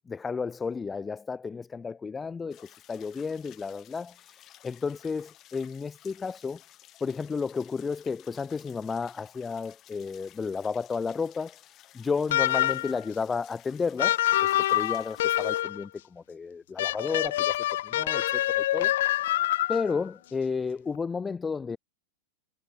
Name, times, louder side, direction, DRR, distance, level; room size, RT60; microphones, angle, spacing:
voice 1, 0.1-6.6 7.0-11.6 11.9-17.6 17.8-18.9 19.7-21.8, left 5 dB, 15° left, 0.8 m, -32 dB
sound 1, 2.5-15.6, left 13 dB, 35° left, 6.2 m, -55 dB
sound 2, 12.3-13.0 14.0-15.8 16.8-20.0, left 14 dB, 55° left, 0.6 m, -26 dB
figure-of-eight pair, 90°, 0 cm